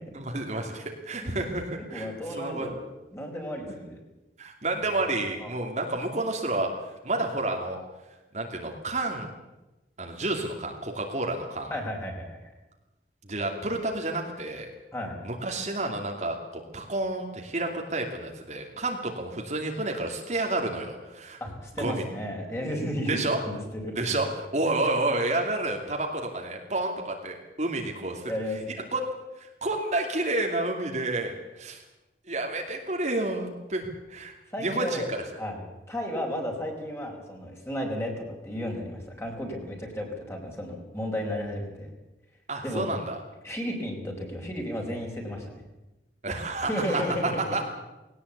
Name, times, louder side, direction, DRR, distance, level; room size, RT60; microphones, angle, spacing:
voice 1, 0.1-2.1 2.4-2.7 4.4-7.8 8.3-9.3 10.0-11.7 13.2-14.7 15.2-21.4 21.8-22.0 23.1-23.4 24.0-28.3 28.9-31.8 32.3-34.3 34.6-35.2 42.5-43.1 46.2-47.6, right 2 dB, 40° right, 2 dB, 2.7 m, -30 dB
voice 2, 1.2-1.5 1.9-2.9 3.1-4.0 5.4-5.6 11.7-12.4 14.9-15.2 21.4-23.2 23.4-24.2 28.3-28.9 34.5-35.1 35.4-35.6 35.9-41.9 42.6-42.9 43.4-45.6 46.7-47.1 47.5-47.6, equal, 15° left, 1 dB, 4.9 m, -33 dB
20.0 x 18.0 x 8.4 m, 1.0 s
head